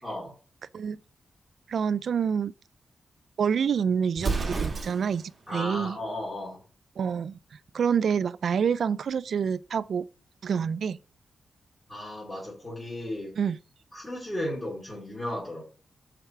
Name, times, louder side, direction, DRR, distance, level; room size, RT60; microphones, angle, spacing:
voice 1, 0.0-0.3 5.5-6.6 11.9-13.3 13.9-15.6, left 1 dB, 10° left, 2.9 m, -35 dB
voice 2, 1.7-2.5 3.4-6.0 7.0-7.4 7.7-10.1 10.4-11.0 13.4-13.6, right 7 dB, 70° right, 0.3 m, -27 dB
Explosion, 4.1-5.3, right 4 dB, 40° right, 1.6 m, -30 dB
5.6 x 4.7 x 5.7 m
wide cardioid pair, 130°, 0 cm